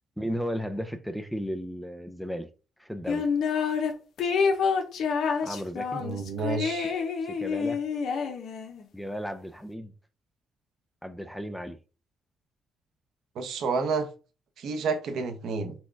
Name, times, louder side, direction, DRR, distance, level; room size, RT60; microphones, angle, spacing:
voice 1, 0.2-2.5 2.8-3.3 5.4-6.0 7.2-7.8 8.9-9.9 11.0-11.8, equal, ahead, 0.5 m, -34 dB
sound 1, 3.1-3.9 4.2-8.8, left 5 dB, 70° left, 0.8 m, -28 dB
voice 2, 6.0-7.0 13.4-14.1 14.6-15.7, right 4 dB, 75° right, 0.8 m, -30 dB
4.2 x 2.3 x 4.5 m
cardioid pair, 90°, 0 cm